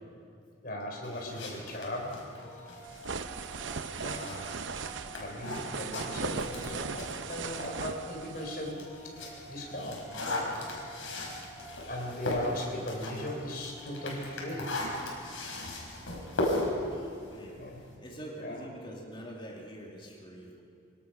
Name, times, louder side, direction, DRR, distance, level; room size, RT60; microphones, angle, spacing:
voice 1, 0.6-2.1 3.9-4.6 5.2-8.8 9.5-10.6 11.9-14.7 17.6-17.8 18.4-18.6, left 1 dB, 45° left, 0 dB, 4.6 m, -38 dB
sound 1, 1.0-7.8 8.2-18.0, left 1 dB, 80° left, 5.3 m, -38 dB
sound 2, 2.4-15.2, right 2 dB, 40° right, 5.4 m, -50 dB
sound 3, 2.8-8.7, right 5 dB, 70° right, 0.8 m, -38 dB
voice 2, 16.9-17.6 18.0-20.6, right 1 dB, 25° left, -2 dB, 2.7 m, -45 dB
24.5 x 18.0 x 6.0 m, 2.3 s
head